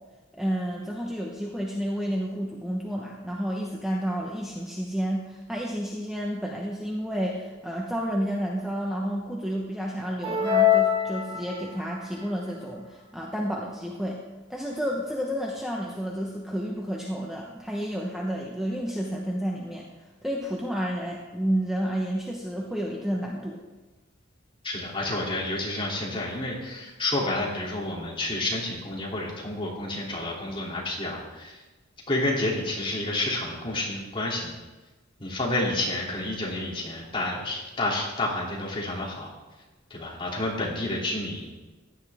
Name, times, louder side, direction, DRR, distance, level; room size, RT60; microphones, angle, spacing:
voice 1, 0.3-14.2 14.5-19.9 20.2-23.6, equal, ahead, -2 dB, 1.0 m, -30 dB
sound 1, 10.2-11.9, left 9 dB, 25° right, 1.8 m, -23 dB
voice 2, 24.6-31.6 32.1-34.5 35.2-39.3 39.9-41.5, left 2 dB, 25° left, -4 dB, 2.9 m, -29 dB
16.0 x 10.5 x 3.6 m, 1.2 s
head